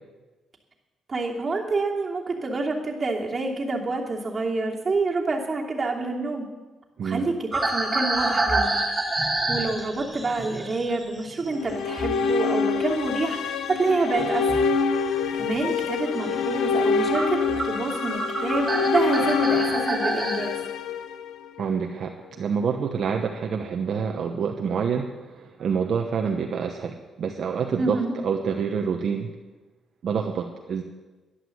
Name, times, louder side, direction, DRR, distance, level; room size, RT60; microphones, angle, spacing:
voice 1, 1.1-6.5 7.0-8.8 9.5-14.7 15.3-20.6 27.8-28.1, right 3 dB, 30° right, -1 dB, 2.8 m, -27 dB
sound 1, 7.5-12.3 12.6-14.7 15.2-15.6 16.1-16.2 16.8-16.9 17.1-20.4, right 2 dB, 15° right, 3.2 m, -28 dB
sound 2, 11.5-21.7, left 5 dB, 85° left, 0.8 m, -26 dB
voice 2, 21.6-29.3 30.0-30.8, right 6 dB, 60° right, 3 dB, 1.1 m, -27 dB
11.5 x 11.0 x 7.9 m, 1.2 s
cardioid pair, 105°, 0 cm